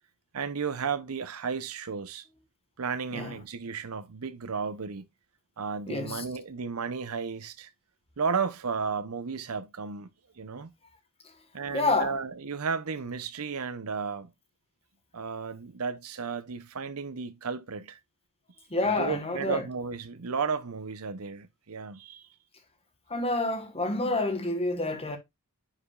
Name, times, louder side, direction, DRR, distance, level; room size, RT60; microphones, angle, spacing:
voice 1, 0.3-2.3 2.8-5.0 5.6-7.7 8.2-10.1 10.4-10.7 11.5-14.3 15.1-18.0 19.0-22.3, right 5 dB, 85° right, 0.7 m, -33 dB
voice 2, 5.9-6.2 11.7-12.2 18.7-19.7 23.1-25.2, left 2 dB, 25° left, 1.4 m, -28 dB
10.0 x 5.0 x 2.4 m
head